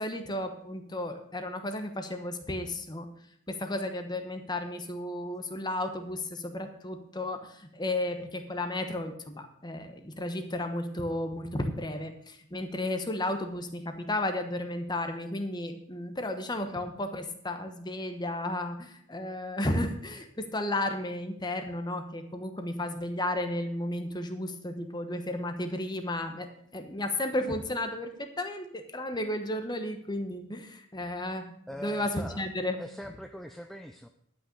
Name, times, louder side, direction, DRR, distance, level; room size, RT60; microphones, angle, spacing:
voice 1, 0.0-3.1 3.5-31.5 31.8-32.8, left 1 dB, 20° left, 7 dB, 1.1 m, -33 dB
voice 2, 31.7-32.4 32.8-34.1, equal, ahead, 5 dB, 0.4 m, -42 dB
11.5 x 6.3 x 6.8 m, 0.68 s
head